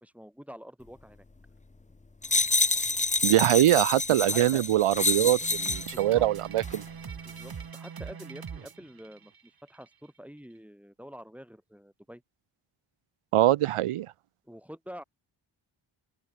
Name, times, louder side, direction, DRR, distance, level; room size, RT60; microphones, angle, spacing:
voice 1, 0.0-1.2 3.4-3.7 4.2-4.7 5.9-6.2 7.2-12.2 14.4-15.0, equal, 5° right, 2.5 m, -47 dB
sound 1, 2.2-6.0 6.6-6.8, left 3 dB, 15° left, 0.8 m, -28 dB
voice 2, 3.2-6.8 13.3-14.1, right 13 dB, 90° right, 0.7 m, -23 dB
sound 2, 5.4-9.9, right 6 dB, 45° right, 1.6 m, -42 dB
open air
wide cardioid pair, 155°, 50 cm